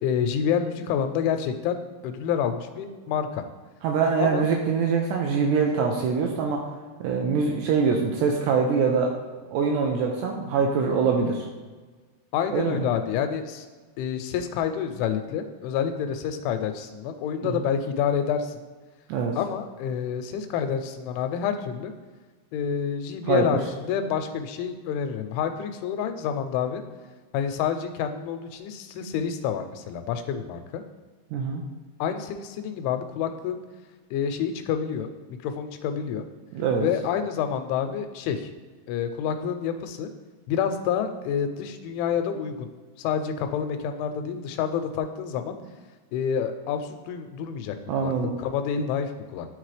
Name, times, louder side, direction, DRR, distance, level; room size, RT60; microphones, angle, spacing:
voice 1, 0.0-3.4 4.2-4.5 12.3-13.7 14.0-18.6 19.4-21.9 22.5-26.8 27.3-30.8 32.0-33.6 34.1-35.1 35.4-36.3 36.8-38.5 38.9-40.1 40.5-42.7 43.0-45.6 46.1-47.8 48.0-48.1 48.4-49.5, left 8 dB, 90° left, 8 dB, 3.0 m, -28 dB
voice 2, 3.8-6.7 7.0-9.1 9.5-11.5 12.5-12.8 17.4-17.7 19.1-19.4 23.3-23.5 31.3-31.6 36.5-36.9 47.9-48.3, right 5 dB, 85° right, 1 dB, 2.5 m, -24 dB
12.0 x 4.1 x 3.3 m, 1.4 s
omnidirectional pair, 5.3 m